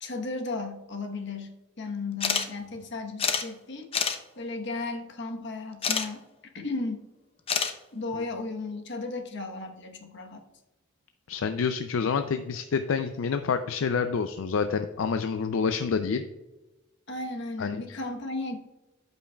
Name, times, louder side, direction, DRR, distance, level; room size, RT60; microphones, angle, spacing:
voice 1, 0.0-3.9 4.4-6.3 6.5-7.1 7.9-10.4 17.1-18.6, left 3 dB, 60° left, 4 dB, 1.1 m, -35 dB
sound 1, 2.2-2.5 2.8-2.9 3.2-3.4 3.9-4.2 5.8-6.1 7.5-7.7, left 6 dB, 30° left, 0.6 m, -26 dB
voice 2, 11.3-16.2 17.6-18.0, left 5 dB, 75° left, 8 dB, 0.4 m, -28 dB
13.0 x 5.5 x 2.3 m, 1.1 s
head